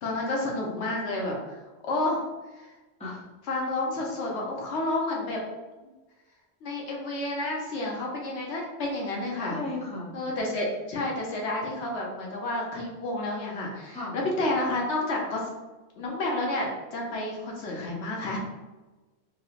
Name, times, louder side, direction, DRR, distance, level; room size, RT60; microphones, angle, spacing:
voice 1, 0.0-2.2 3.5-5.4 6.6-9.6 10.1-15.4 16.0-18.4, left 2 dB, 75° left, -1 dB, 1.0 m, -30 dB
voice 2, 9.5-10.1 13.9-14.2, left 2 dB, 5° left, -6 dB, 0.5 m, -35 dB
3.1 x 2.7 x 2.4 m, 1.2 s
omnidirectional pair, 1.2 m